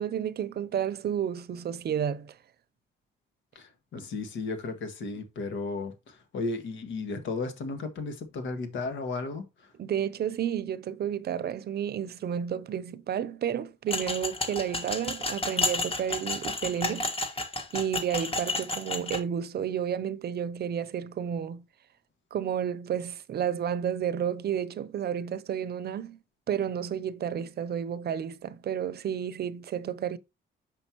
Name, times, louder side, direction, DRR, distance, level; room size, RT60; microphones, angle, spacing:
voice 1, 0.0-2.4 9.8-17.1 17.7-21.6 22.3-26.2 26.5-30.2, right 9 dB, 55° right, 0.7 m, -31 dB
voice 2, 3.5-9.7, left 3 dB, 75° left, 1.7 m, -34 dB
sound 1, 13.9-19.2, left 2 dB, 30° left, 1.6 m, -31 dB
6.7 x 5.4 x 3.0 m
cardioid pair, 90°, 20 cm